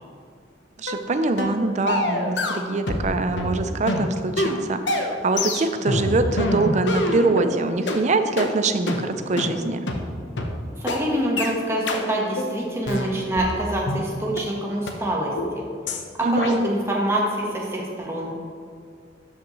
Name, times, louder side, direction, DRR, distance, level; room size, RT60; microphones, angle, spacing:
voice 1, 0.8-9.8 16.2-16.6, right 3 dB, 40° right, 9 dB, 0.5 m, -24 dB
sound 1, 0.9-1.0 1.4-1.6 1.9-3.1 3.4-7.5 7.9-8.0 8.4-8.5 8.9-9.0 9.4-9.5 9.9-10.0 10.4-10.5 10.9-11.0 11.4-11.5 11.9-12.0 12.4-12.5 12.9-14.0 14.4-14.5 14.9-15.0 15.4-15.5 15.9-16.0 16.4-16.5, left 1 dB, 75° left, 0.8 m, -25 dB
voice 2, 10.7-15.6 16.2-18.3, right 1 dB, 15° right, -3 dB, 1.2 m, -26 dB
12.0 x 5.5 x 3.1 m, 2.3 s
head